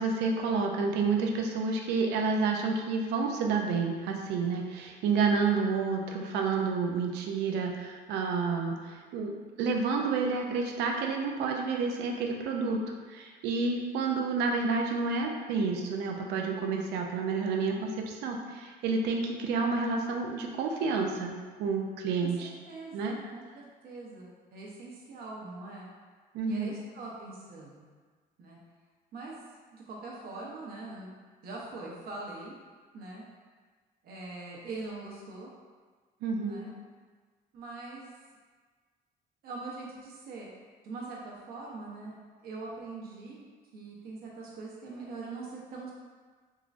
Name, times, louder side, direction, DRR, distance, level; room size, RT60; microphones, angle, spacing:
voice 1, 0.0-12.8 13.1-22.5 22.9-23.2 26.3-26.7 36.2-36.7, right 4 dB, 85° right, 2 dB, 0.5 m, -29 dB
voice 2, 22.7-25.9 26.5-27.9 28.4-28.6 29.1-29.4 29.7-31.1 31.4-32.5 32.9-33.2 34.0-35.5 36.4-36.7 37.5-38.1 39.4-40.5 40.8-42.2 42.4-43.4 43.7-45.9, right 3 dB, 65° right, -3 dB, 0.9 m, -42 dB
3.6 x 3.0 x 2.5 m, 1.5 s
cardioid pair, 110°, 17 cm